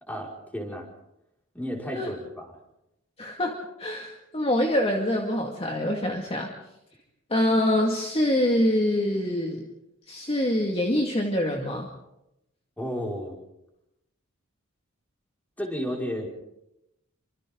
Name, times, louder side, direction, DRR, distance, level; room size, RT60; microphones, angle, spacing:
voice 1, 0.1-0.9 1.5-2.5 12.8-13.4 15.6-16.3, equal, 5° left, -1 dB, 5.6 m, -32 dB
voice 2, 3.2-6.5 7.3-9.6 10.1-11.9, left 1 dB, 30° left, 1 dB, 2.2 m, -25 dB
29.5 x 25.5 x 4.0 m, 0.86 s
head